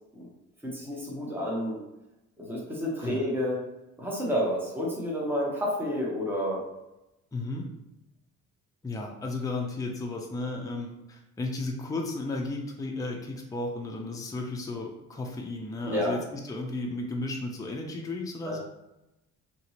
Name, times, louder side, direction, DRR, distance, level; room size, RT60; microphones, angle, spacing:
voice 1, 0.6-1.8 2.4-3.7 4.0-6.6 15.9-16.2 18.4-18.6, equal, 5° right, -4 dB, 1.0 m, -30 dB
voice 2, 7.3-7.7 8.8-18.6, left 2 dB, 10° left, 0 dB, 0.5 m, -34 dB
2.9 x 2.6 x 2.8 m, 0.90 s
cardioid pair, 90°, 30 cm